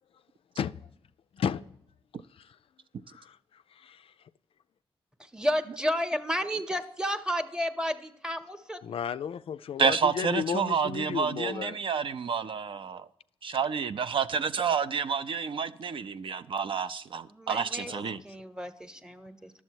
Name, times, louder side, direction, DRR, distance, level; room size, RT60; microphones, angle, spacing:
voice 1, 3.1-4.1 8.8-11.8 17.9-18.2, left 7 dB, 65° left, 0.3 m, -34 dB
voice 2, 5.3-8.8 17.3-17.9 18.2-19.5, equal, 5° right, 0.9 m, -32 dB
voice 3, 9.8-13.1 13.4-18.2, right 6 dB, 55° right, 0.5 m, -29 dB
11.0 x 7.1 x 4.5 m
cardioid pair, 65°, 10 cm